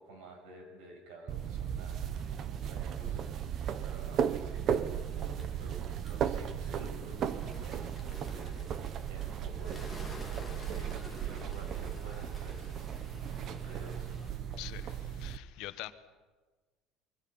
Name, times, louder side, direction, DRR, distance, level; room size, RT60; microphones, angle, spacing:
voice 1, 0.0-2.1 2.5-14.1, right 1 dB, 75° right, 3 dB, 6.8 m, -51 dB
sound 1, 1.3-15.4, right 8 dB, 35° right, 0.9 m, -36 dB
Bird, 4.9-14.3, left 1 dB, 5° right, 2.7 m, -52 dB
voice 2, 14.6-15.9, left 17 dB, 60° left, 11 dB, 1.1 m, -44 dB
24.5 x 22.0 x 5.5 m, 1.4 s
cardioid pair, 175°, 0 cm